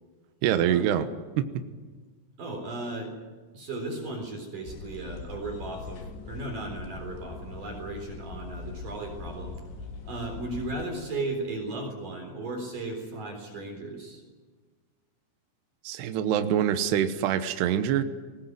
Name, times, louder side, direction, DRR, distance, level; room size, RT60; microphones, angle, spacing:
voice 1, 0.4-1.1 1.4-1.5 15.8-18.0, right 10 dB, 70° right, 8 dB, 3.0 m, -25 dB
voice 2, 2.4-3.2 3.5-9.6 10.1-14.2, right 2 dB, 45° right, 2 dB, 5.2 m, -36 dB
sound 1, 4.6-10.9, left 4 dB, 65° left, 4.4 m, -41 dB
20.5 x 19.5 x 9.4 m, 1.4 s
omnidirectional pair, 5.3 m